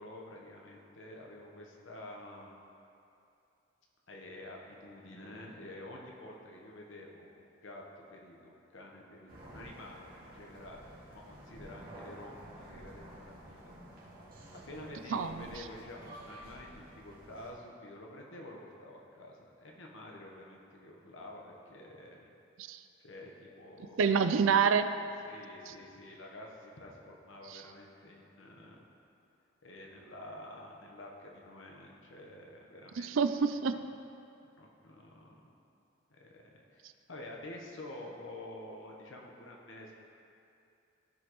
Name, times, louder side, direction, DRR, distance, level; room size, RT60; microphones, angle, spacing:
voice 1, 0.0-2.5 4.1-13.7 14.5-22.3 23.0-24.3 25.0-28.8 29.6-33.1 34.6-35.3 36.1-36.8 37.1-39.9, left 1 dB, 75° left, -1 dB, 1.1 m, -49 dB
sound 1, 9.3-17.5, right 1 dB, 50° right, 2.1 m, -51 dB
voice 2, 15.1-15.5 22.6-22.8 24.0-24.9 25.7-25.8 27.5-27.6 33.0-33.8, right 6 dB, 75° right, 10 dB, 0.4 m, -27 dB
14.5 x 5.2 x 3.1 m, 2.6 s
head